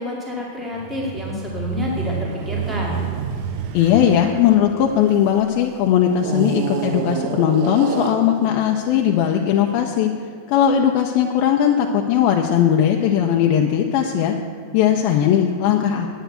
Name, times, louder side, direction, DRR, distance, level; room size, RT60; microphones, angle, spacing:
voice 1, 0.0-3.1, left 2 dB, ahead, -4 dB, 0.4 m, -28 dB
sound 1, 0.7-5.4 6.2-9.6, right 7 dB, 75° right, 2.4 m, -29 dB
voice 2, 3.7-10.1 10.5-14.4 14.7-16.1, left 9 dB, 80° left, 2 dB, 2.3 m, -18 dB
9.3 x 9.1 x 8.1 m, 2.2 s
omnidirectional pair, 4.7 m